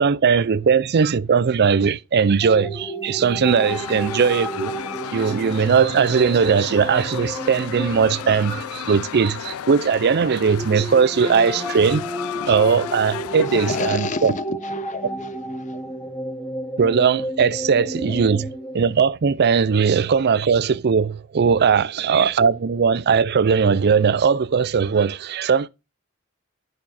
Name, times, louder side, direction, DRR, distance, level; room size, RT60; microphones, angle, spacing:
voice 1, 0.0-4.7 5.1-12.1 12.5-14.3 16.8-18.5 18.7-25.7, right 6 dB, 50° right, 0.4 m, -19 dB
sound 1, 2.4-9.5 10.4-18.9, right 1 dB, 5° left, 1.1 m, -32 dB
sound 2, 3.4-13.9, left 9 dB, 80° left, 0.4 m, -34 dB
voice 2, 13.5-15.8 18.1-18.2, left 4 dB, 35° left, 0.6 m, -30 dB
8.9 x 6.1 x 4.1 m
head